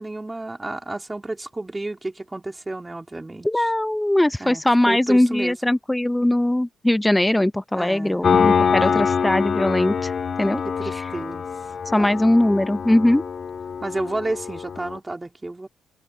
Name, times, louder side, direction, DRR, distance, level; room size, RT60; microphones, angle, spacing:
voice 1, 0.0-3.7 4.4-5.5 7.7-8.3 8.8-9.2 10.6-11.5 12.0-12.2 13.8-15.7, right 2 dB, 15° right, 3.2 m, -31 dB
voice 2, 3.4-10.1 10.4-10.6 11.9-13.2, left 1 dB, 10° left, 0.6 m, -20 dB
Piano, 8.2-15.0, left 6 dB, 45° left, 4.6 m, -24 dB
cardioid pair, 90°, 0 cm